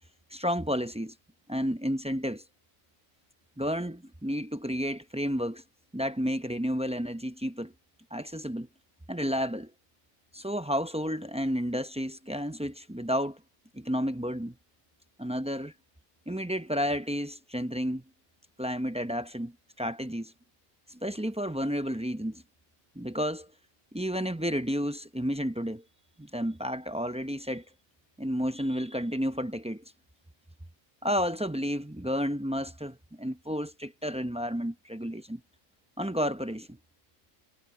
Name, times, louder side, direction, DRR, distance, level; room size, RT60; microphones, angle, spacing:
voice 1, 0.3-1.1 1.5-2.4 3.6-5.6 5.9-7.7 8.1-8.7 9.1-9.7 10.3-13.4 13.7-14.5 15.2-15.7 16.3-18.0 18.6-19.5 19.8-20.3 20.9-22.4 23.0-23.5 23.9-25.8 26.2-27.6 28.2-29.8 31.0-35.4 36.0-36.7, equal, 10° right, 0.3 m, -31 dB
omnidirectional pair, 1.4 m